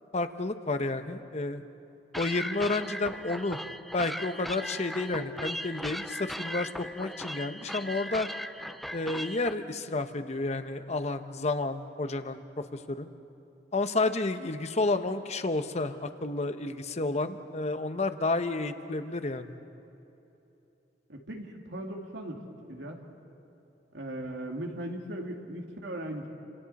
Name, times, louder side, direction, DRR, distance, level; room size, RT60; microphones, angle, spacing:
voice 1, 0.1-1.6 2.2-3.6 3.9-8.3 8.9-13.1 13.7-19.5, left 2 dB, 40° left, 9 dB, 0.9 m, -31 dB
sound 1, 2.1-9.5, equal, ahead, 0.4 m, -38 dB
voice 2, 21.1-22.4 22.7-23.0 23.9-26.3, right 1 dB, 90° right, 2 dB, 2.3 m, -38 dB
29.5 x 26.5 x 4.2 m, 2.9 s
head